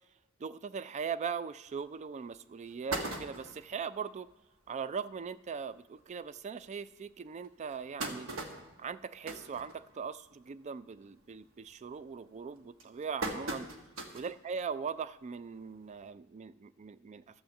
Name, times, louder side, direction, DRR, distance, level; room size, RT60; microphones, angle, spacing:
voice 1, 0.4-4.3 4.7-8.3 8.8-13.7 14.1-17.4, right 6 dB, 35° right, 16 dB, 0.3 m, -40 dB
sound 1, 1.8-1.9 2.3-2.4 2.7-3.7 4.3-4.4 4.7-4.8 5.1-5.3 6.0-6.1 6.6-6.7 7.4-10.3 10.6-11.0 11.3-11.7 12.3-14.4 14.8-14.9 16.1-16.2, right 2 dB, 75° right, 1.2 m, -39 dB
12.5 x 6.4 x 7.0 m, 1.0 s
head